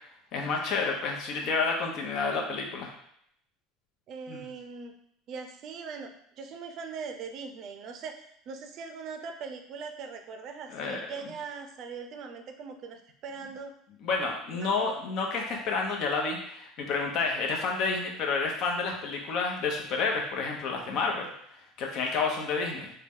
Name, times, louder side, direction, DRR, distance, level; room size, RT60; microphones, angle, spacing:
voice 1, 0.3-2.9 4.3-4.4 10.7-11.0 14.0-21.3 21.8-22.9, left 4 dB, 55° left, 1 dB, 0.8 m, -30 dB
voice 2, 4.1-4.9 5.3-8.2 8.5-13.7 14.5-14.7, right 5 dB, 50° right, 5 dB, 0.5 m, -41 dB
3.8 x 2.2 x 3.6 m, 0.70 s
supercardioid pair, 115°, 0 cm